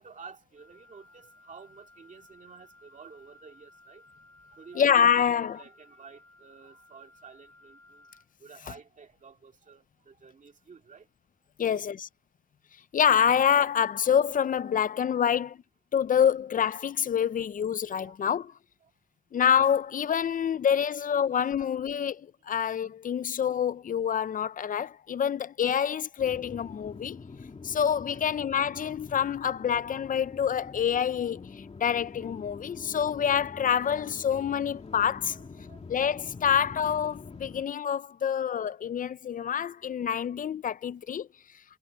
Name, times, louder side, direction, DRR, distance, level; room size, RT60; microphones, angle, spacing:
voice 1, 0.0-4.1 4.5-8.1 8.4-11.1 11.6-12.0 15.2-15.4 17.9-18.5 18.8-18.9 28.1-28.4 34.2-34.4 35.3-36.0 39.9-40.0, right 5 dB, 65° right, 2.1 m, -52 dB
Wind instrument woodwind instrument, 0.6-8.3, left 2 dB, 15° left, 5.1 m, -58 dB
voice 2, 4.7-5.6 11.6-12.1 12.9-15.6 15.9-18.5 19.3-27.2 27.6-35.4 35.9-41.3, left 8 dB, 80° left, 0.4 m, -26 dB
sound 1, 26.2-37.6, left 4 dB, 50° left, 2.8 m, -45 dB
wide cardioid pair, 110°, 14 cm